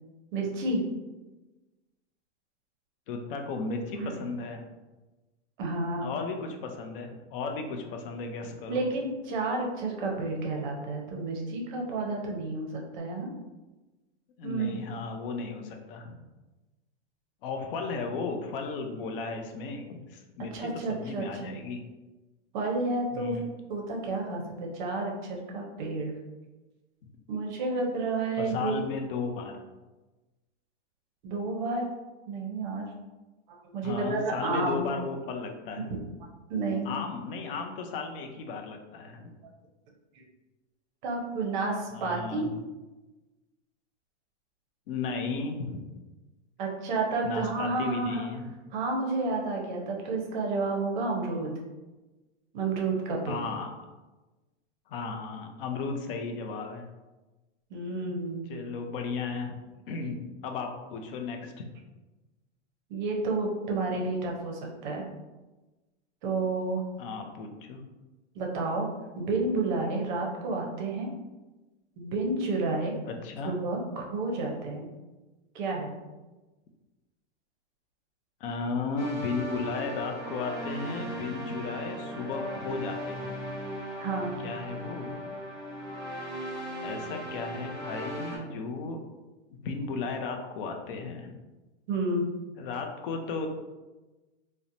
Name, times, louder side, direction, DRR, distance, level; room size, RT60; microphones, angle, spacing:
voice 1, 0.3-0.8 4.0-4.3 5.6-6.2 8.7-13.3 14.4-14.8 20.5-21.6 22.5-23.4 23.7-24.4 24.7-26.1 27.3-28.8 31.2-31.9 32.3-32.9 33.5-34.9 35.9-36.0 36.5-36.9 40.2-40.3 41.0-42.4 46.6-48.3 48.7-51.5 52.5-53.5 57.7-58.5 62.9-65.1 66.2-66.8 68.3-68.9 69.2-71.1 72.0-72.9 73.4-74.9 75.5-75.9 84.0-84.4 91.9-92.3, right 3 dB, 40° right, -1 dB, 0.6 m, -30 dB
voice 2, 3.1-4.6 6.0-8.8 14.4-16.1 17.4-21.8 23.1-23.5 28.4-29.5 33.8-35.9 36.8-39.3 41.9-42.5 44.9-45.8 47.2-48.5 53.3-53.7 54.9-56.9 58.5-59.5 59.9-61.6 67.0-67.8 73.0-73.5 78.4-83.4 84.4-85.2 86.8-89.0 89.6-91.3 92.6-93.5, left 4 dB, 50° left, 4 dB, 0.4 m, -35 dB
sound 1, 79.0-88.4, equal, 10° left, 0.7 m, -37 dB
2.8 x 2.1 x 2.5 m, 1.1 s
supercardioid pair, 160°, 35 cm